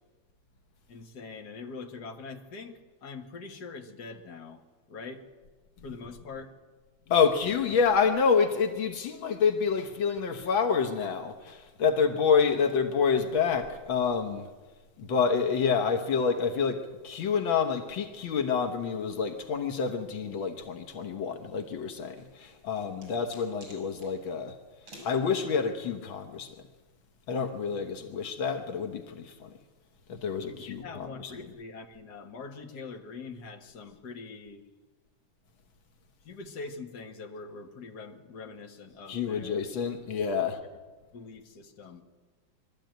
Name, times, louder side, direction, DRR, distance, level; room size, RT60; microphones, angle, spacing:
voice 1, 0.9-4.6 4.9-5.2 5.8-6.5 30.4-34.6 36.3-39.6 41.1-42.0, left 4 dB, 55° left, 2.1 m, -43 dB
voice 2, 7.1-14.5 15.0-24.6 25.0-26.6 27.3-29.5 30.1-31.3 39.1-40.6, left 6 dB, 80° left, 2.0 m, -28 dB
sound 1, 22.2-24.1 24.9-25.2, equal, 80° right, 6.8 m, -50 dB
22.5 x 13.5 x 9.1 m
omnidirectional pair, 2.1 m